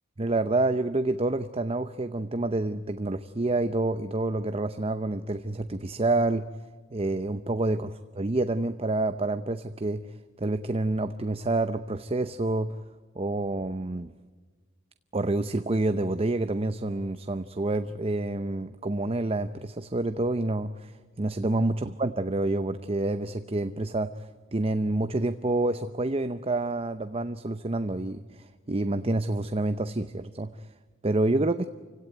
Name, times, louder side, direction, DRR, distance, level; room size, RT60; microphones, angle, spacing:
voice 1, 0.2-6.4 6.9-10.0 10.4-12.8 13.2-14.1 15.1-20.9 21.2-24.3 24.5-30.5 31.0-31.7, right 2 dB, 30° right, 10 dB, 0.7 m, -28 dB
28.5 x 17.0 x 9.3 m, 1.4 s
head